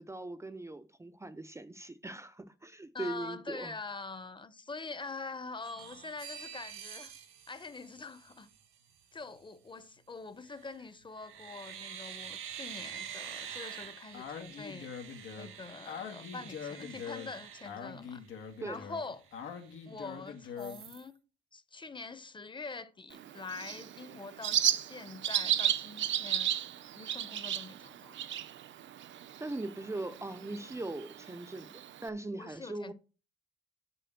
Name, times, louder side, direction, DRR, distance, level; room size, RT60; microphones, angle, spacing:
voice 1, 0.0-3.7 18.6-18.8 29.4-32.9, right 2 dB, 15° right, 0.8 m, -40 dB
voice 2, 2.9-7.1 7.5-8.5 9.1-14.9 15.4-18.2 18.7-19.2 19.8-21.1 21.5-26.5 26.9-28.2 32.3-32.9, left 4 dB, 25° left, 1.1 m, -44 dB
sound 1, 5.6-8.6 10.5-10.8 11.2-18.5 18.9-19.0 19.3-20.2 20.6-21.1, right 8 dB, 85° right, 2.0 m, -47 dB
Speech, 14.1-20.9, left 7 dB, 80° left, 2.1 m, -43 dB
Bird, 23.1-32.1, right 11 dB, 70° right, 0.9 m, -34 dB
8.2 x 6.9 x 6.1 m
cardioid pair, 90°, 20 cm